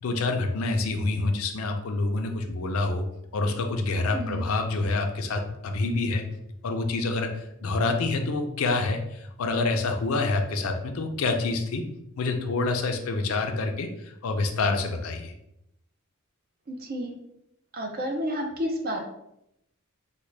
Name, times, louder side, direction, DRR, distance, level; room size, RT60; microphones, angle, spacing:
voice 1, 0.0-3.1 3.3-6.2 6.6-11.8 12.2-15.3, left 3 dB, 75° left, 5 dB, 0.5 m, -27 dB
voice 2, 4.1-4.4 16.7-17.1 17.7-19.0, equal, 45° right, 3 dB, 0.5 m, -30 dB
3.6 x 2.2 x 3.2 m, 0.82 s
head